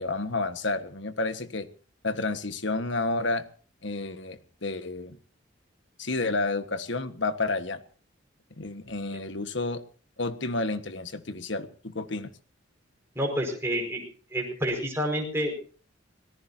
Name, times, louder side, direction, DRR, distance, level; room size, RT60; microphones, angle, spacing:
voice 1, 0.0-1.7 2.0-3.4 3.8-5.2 6.0-7.8 8.6-9.8 10.2-12.3, left 3 dB, 65° left, 10 dB, 1.6 m, -30 dB
voice 2, 13.2-14.0 14.3-15.5, equal, 15° right, 0 dB, 5.3 m, -28 dB
25.5 x 18.0 x 2.8 m, 0.41 s
head